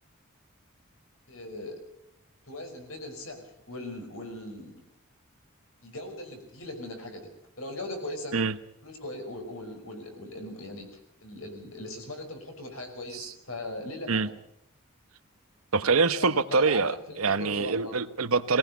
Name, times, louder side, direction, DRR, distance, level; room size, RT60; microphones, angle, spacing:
voice 1, 1.3-1.8 2.5-4.8 5.8-7.3 7.6-8.4 8.8-10.9 11.2-14.3 16.1-16.8 17.1-17.9, left 1 dB, 75° left, 5 dB, 5.5 m, -39 dB
voice 2, 15.7-18.6, right 4 dB, 85° right, 13 dB, 1.0 m, -25 dB
20.5 x 18.5 x 8.2 m, 0.76 s
head